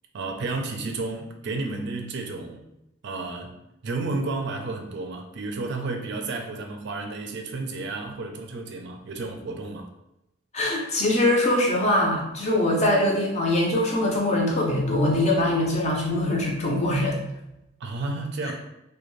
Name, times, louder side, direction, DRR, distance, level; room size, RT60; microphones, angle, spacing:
voice 1, 0.1-2.6 3.0-3.6 3.8-9.9 17.8-18.5, right 3 dB, 55° right, 3 dB, 0.4 m, -32 dB
voice 2, 10.5-17.2, left 1 dB, 35° left, -2 dB, 0.6 m, -22 dB
2.5 x 2.2 x 3.1 m, 0.88 s
head